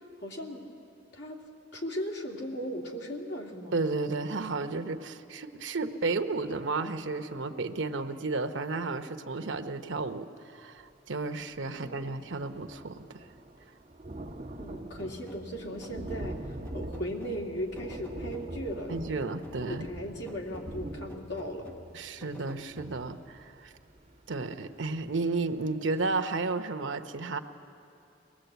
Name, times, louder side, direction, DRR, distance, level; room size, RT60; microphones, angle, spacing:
voice 1, 0.2-0.6 1.1-1.4 1.7-3.8 11.7-12.1 14.6-16.4 16.7-19.3 19.6-21.7, equal, 65° left, 0 dB, 2.5 m, -37 dB
voice 2, 3.7-13.2 18.9-19.9 21.9-23.7 24.3-27.4, right 3 dB, 80° right, 8 dB, 0.9 m, -33 dB
Thunder, 11.6-11.7 11.9-24.5 25.0-25.1 25.4-25.5, right 1 dB, 35° right, 1.4 m, -43 dB
sound 1, 15.0-18.9 19.4-23.3, equal, 10° left, 0.9 m, -50 dB
22.5 x 19.0 x 8.1 m, 2.7 s
head